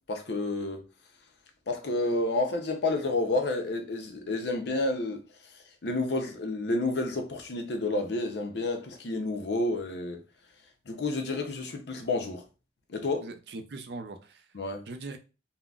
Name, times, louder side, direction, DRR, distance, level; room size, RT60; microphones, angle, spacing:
voice 1, 0.1-0.8 1.7-5.2 5.8-10.2 10.9-12.4 12.9-13.3 14.5-14.8, left 2 dB, 65° left, 0.6 m, -30 dB
voice 2, 13.2-14.4 14.9-15.2, right 3 dB, 65° right, 0.4 m, -40 dB
3.7 x 2.0 x 2.3 m
head